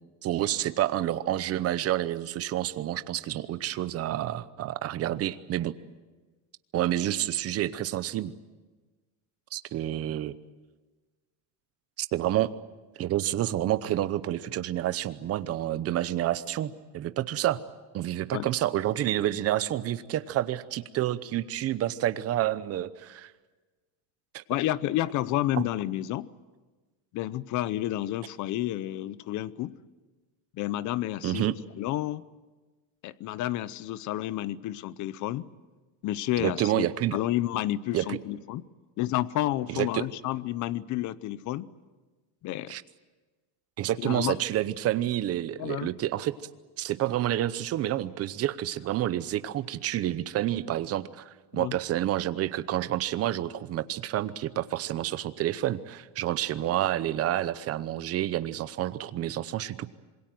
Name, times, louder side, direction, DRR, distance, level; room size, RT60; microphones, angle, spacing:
voice 1, 0.2-5.8 6.7-8.3 9.5-10.4 12.0-12.5 13.0-17.6 17.9-23.3 24.3-24.4 25.5-25.6 31.2-31.6 36.4-37.2 37.9-38.2 39.7-40.1 42.7-42.8 43.8-46.3 46.8-59.9, right 13 dB, 30° right, 14 dB, 0.8 m, -29 dB
voice 2, 24.5-26.3 27.1-29.7 30.6-32.2 33.0-35.5 36.0-38.6 39.0-41.7 42.4-42.7 44.0-44.4 45.6-45.9 51.5-51.7, left 14 dB, 40° left, 18 dB, 0.7 m, -30 dB
27.0 x 21.5 x 7.7 m, 1.3 s
cardioid pair, 160°, 46 cm